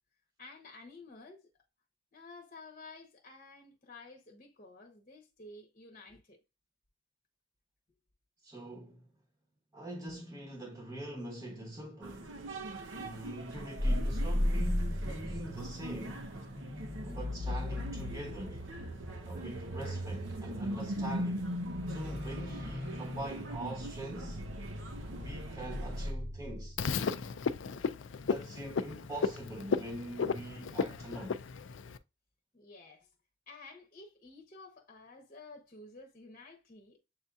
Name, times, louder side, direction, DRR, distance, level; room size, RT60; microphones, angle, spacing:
voice 1, 0.4-1.5 2.1-6.4 32.5-33.1 33.5-37.0, left 3 dB, 40° left, 0.9 m, -52 dB
voice 2, 8.4-9.1 9.7-12.5 12.9-16.3 17.0-18.7 19.3-21.5 21.9-24.5 25.1-26.8 28.2-31.4, right 1 dB, 15° right, 1.0 m, -43 dB
sound 1, 12.0-26.1, right 2 dB, 75° right, 0.7 m, -45 dB
sound 2, 13.8-27.0, left 1 dB, 60° right, 1.2 m, -36 dB
Frog, 26.8-32.0, left 5 dB, 75° left, 0.4 m, -34 dB
7.7 x 2.7 x 2.3 m
head